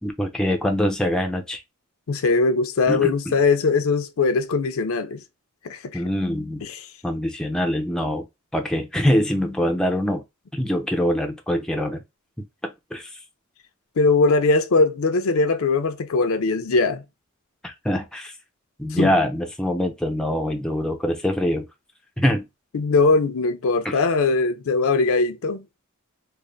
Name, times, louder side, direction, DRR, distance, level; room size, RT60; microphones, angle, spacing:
voice 1, 0.0-1.6 2.9-3.3 5.9-6.6 7.0-8.3 8.5-10.2 10.5-12.0 12.9-13.2 17.6-18.3 18.8-21.6 22.2-22.4 23.8-24.0, equal, 5° left, 0.4 m, -24 dB
voice 2, 2.1-5.2 5.6-6.0 14.0-17.0 18.9-19.1 22.7-25.6, left 3 dB, 70° left, 0.5 m, -20 dB
3.3 x 2.0 x 3.8 m
head